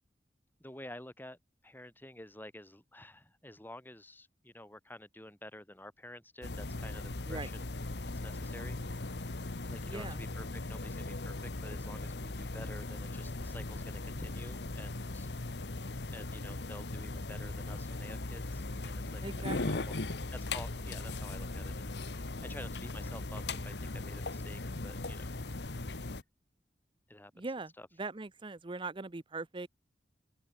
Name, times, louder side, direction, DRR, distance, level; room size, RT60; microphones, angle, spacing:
voice 1, 0.6-1.4 1.6-7.7 8.2-8.8 9.7-11.3 11.6-15.3 16.1-19.2 19.6-19.9 20.3-21.7 22.1-25.3 27.1-27.5 27.8-27.9, left 1 dB, 10° left, 7.0 m, -50 dB
sound 1, 6.4-26.2, left 2 dB, 70° left, 1.3 m, -39 dB
voice 2, 9.9-10.2 19.2-19.8 27.4-27.7 28.0-29.7, right 3 dB, 30° right, 0.7 m, -40 dB
head